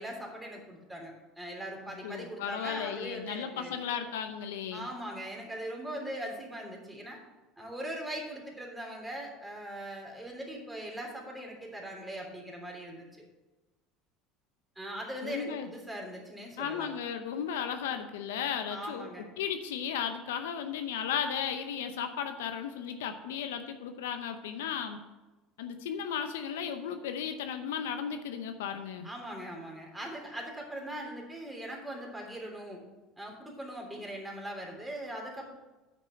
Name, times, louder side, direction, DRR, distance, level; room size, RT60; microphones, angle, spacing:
voice 1, 0.0-3.8 4.7-7.2 7.6-13.1 14.7-16.9 18.7-19.3 29.0-32.8 33.2-35.5, right 1 dB, 5° right, -2 dB, 3.3 m, -40 dB
voice 2, 2.0-4.9 15.2-15.7 16.6-19.1 19.4-25.0 25.6-29.1, left 8 dB, 90° left, 8 dB, 0.7 m, -35 dB
8.8 x 6.2 x 6.5 m, 1.1 s
supercardioid pair, 95°, 0 cm